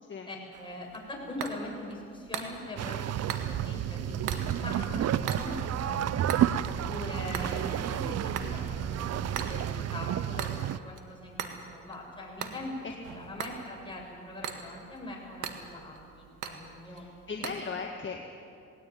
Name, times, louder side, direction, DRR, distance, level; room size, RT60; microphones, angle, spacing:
voice 1, 0.3-6.3 6.6-12.7 13.2-17.0, left 1 dB, 15° left, -2 dB, 7.1 m, -42 dB
sound 1, 0.5-17.6, right 7 dB, 90° right, 1.7 m, -42 dB
sound 2, 2.8-10.8, right 11 dB, 55° right, 0.6 m, -31 dB
sound 3, 3.8-9.8, right 3 dB, 25° right, 1.7 m, -44 dB
voice 2, 16.9-18.3, left 5 dB, 40° left, 2 dB, 1.8 m, -38 dB
19.5 x 17.5 x 9.5 m, 2.5 s
cardioid pair, 90°, 30 cm